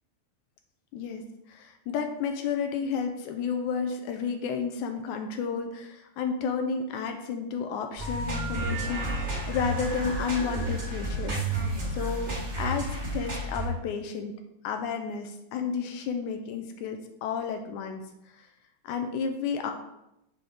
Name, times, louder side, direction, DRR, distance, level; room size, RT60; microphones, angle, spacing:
voice 1, 0.9-1.2 1.5-11.4 11.9-14.3 14.6-18.5 18.8-19.7, left 6 dB, 80° left, 5 dB, 2.0 m, -32 dB
sound 1, 8.0-13.7, right 1 dB, 25° right, 2.0 m, -31 dB
6.3 x 4.4 x 4.9 m, 0.85 s
omnidirectional pair, 3.6 m